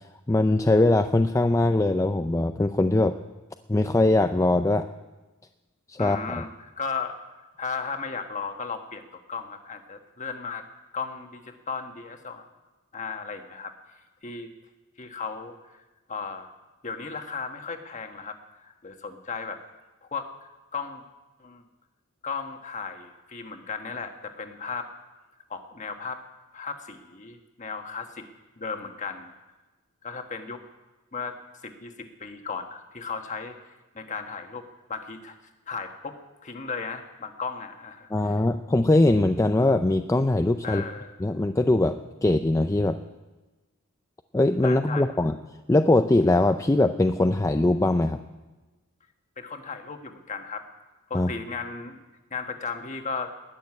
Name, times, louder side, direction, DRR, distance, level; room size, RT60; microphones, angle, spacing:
voice 1, 0.3-3.1 3.7-4.9 5.9-6.4 38.1-40.8 41.2-43.0 44.3-45.4 45.7-48.2 51.1-51.3, left 2 dB, 15° left, 7 dB, 0.4 m, -21 dB
voice 2, 6.0-6.5 6.8-7.1 7.6-10.6 10.9-12.5 12.9-13.7 14.2-14.5 15.0-15.5 16.1-16.5 16.8-18.4 18.6-19.6 20.0-20.3 20.7-21.0 21.4-21.6 22.2-24.9 25.5-26.2 26.5-28.3 28.6-29.3 30.0-30.6 31.1-31.3 31.6-33.6 33.9-34.6 34.9-35.4 35.7-38.4 40.6-41.1 44.6-45.1 49.4-50.6 51.1-52.0 52.3-53.3, left 5 dB, 35° left, 5 dB, 1.4 m, -35 dB
20.0 x 6.8 x 9.6 m, 1.2 s
head